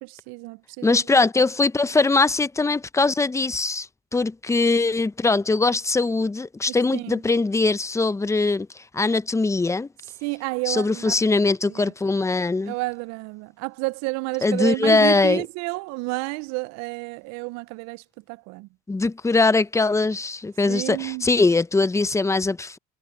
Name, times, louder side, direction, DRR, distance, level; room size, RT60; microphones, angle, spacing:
voice 1, 0.0-1.0 6.7-7.2 10.2-11.2 11.7-11.9 12.6-18.7 20.7-21.3, right 26 dB, 65° right, 0.5 m, -30 dB
voice 2, 0.8-9.9 10.7-12.7 14.4-15.4 18.9-22.8, left 3 dB, 10° left, 0.7 m, -21 dB
supercardioid pair, 100°, 30 cm